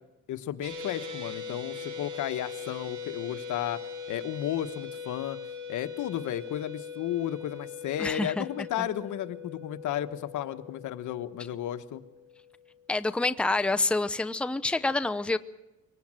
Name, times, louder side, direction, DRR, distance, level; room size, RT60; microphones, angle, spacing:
voice 1, 0.3-3.8 4.1-5.4 5.7-12.0, left 11 dB, 75° left, 11 dB, 1.2 m, -33 dB
sound 1, 0.6-13.0, left 5 dB, 80° right, 3.0 m, -41 dB
voice 2, 8.0-8.5 8.8-8.9 12.9-15.4, left 2 dB, 5° left, 10 dB, 0.7 m, -27 dB
23.0 x 18.5 x 7.5 m, 1.0 s
cardioid pair, 90°, 30 cm